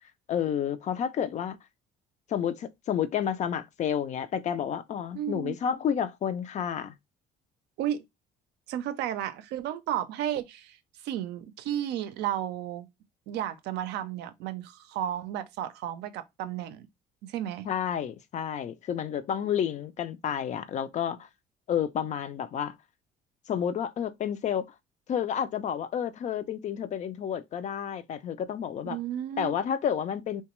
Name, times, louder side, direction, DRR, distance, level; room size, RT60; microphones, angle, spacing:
voice 1, 0.3-1.6 2.3-6.9 17.6-21.3 21.7-22.7 23.5-24.7 25.1-29.0 29.4-30.4, left 8 dB, 45° left, 0.4 m, -30 dB
voice 2, 5.1-5.6 7.8-8.0 8.7-10.8 11.0-12.9 13.3-16.9 17.2-17.7 28.9-29.5, right 11 dB, 85° right, 0.4 m, -33 dB
2.9 x 2.2 x 2.9 m
cardioid pair, 110°, 17 cm